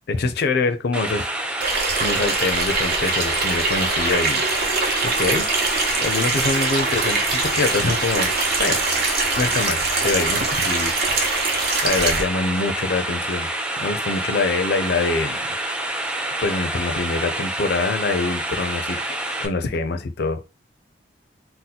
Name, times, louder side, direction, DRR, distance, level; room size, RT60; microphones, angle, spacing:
voice 1, 0.1-1.3 2.0-4.4 5.2-5.5 6.0-8.3 8.6-8.8 9.4-13.5 13.8-15.4 16.4-19.0 19.4-20.4, left 3 dB, 60° left, 0.5 m, -24 dB
sound 1, 0.9-19.5, right 1 dB, 5° right, 0.4 m, -28 dB
Water tap faucet / Sink (filling or washing), 1.6-12.2, right 3 dB, 60° right, 0.8 m, -23 dB
2.7 x 2.1 x 4.0 m
head